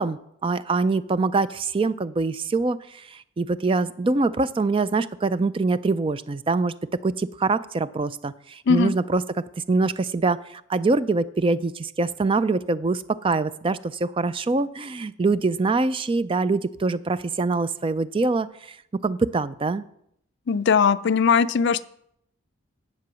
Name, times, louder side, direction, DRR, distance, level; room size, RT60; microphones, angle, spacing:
voice 1, 0.0-6.7 7.0-18.8 19.0-19.8, right 3 dB, 25° right, 16 dB, 0.3 m, -24 dB
voice 2, 20.5-21.8, left 6 dB, 55° left, 13 dB, 0.4 m, -19 dB
10.5 x 7.7 x 6.1 m, 0.73 s
head